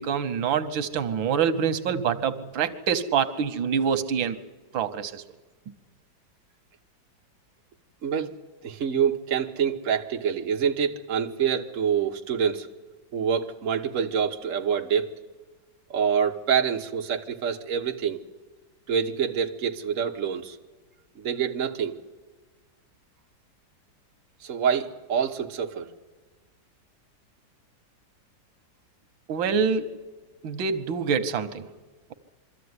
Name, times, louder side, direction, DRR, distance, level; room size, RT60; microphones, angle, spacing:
voice 1, 0.0-4.4 4.7-5.2 29.3-30.0 30.4-31.7, right 6 dB, 85° right, 1.8 m, -26 dB
voice 2, 8.0-8.3 8.6-12.7 13.1-15.1 15.9-18.2 18.9-20.6 21.2-22.0 24.4-25.9, right 7 dB, 45° right, 1.4 m, -26 dB
24.0 x 13.5 x 9.6 m
omnidirectional pair, 2.1 m